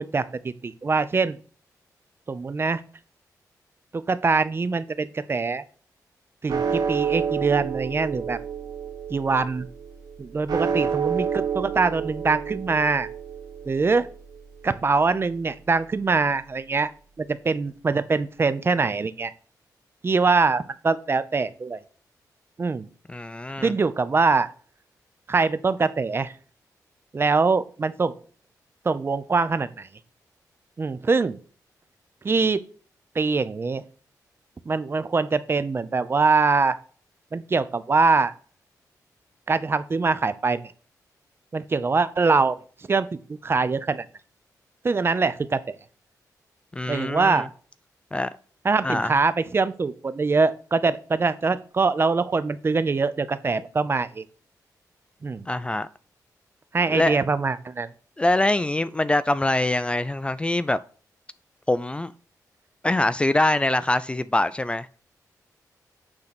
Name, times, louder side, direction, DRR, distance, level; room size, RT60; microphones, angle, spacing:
voice 1, 0.0-1.4 2.3-2.8 3.9-5.6 6.4-8.4 9.1-9.7 10.2-13.1 13.7-14.1 14.6-16.9 17.2-19.3 20.0-21.8 22.6-22.9 23.6-24.5 25.3-26.3 27.1-28.1 28.8-29.9 30.8-31.4 32.2-32.6 33.1-33.8 34.7-36.8 37.3-38.3 39.5-40.6 41.5-42.6 42.9-44.1 44.8-45.8 46.9-47.5 48.6-54.2 55.2-55.4 56.7-57.9, right 4 dB, 35° right, 0.7 m, -23 dB
sound 1, 6.5-16.9, right 7 dB, 75° right, 1.3 m, -30 dB
voice 2, 23.1-23.7 46.7-47.5 48.1-48.3 48.8-49.1 55.5-55.9 56.9-57.2 58.2-60.8 61.7-62.1 62.8-65.0, left 2 dB, 15° left, 0.4 m, -24 dB
8.9 x 3.9 x 6.0 m
cardioid pair, 90°, 7 cm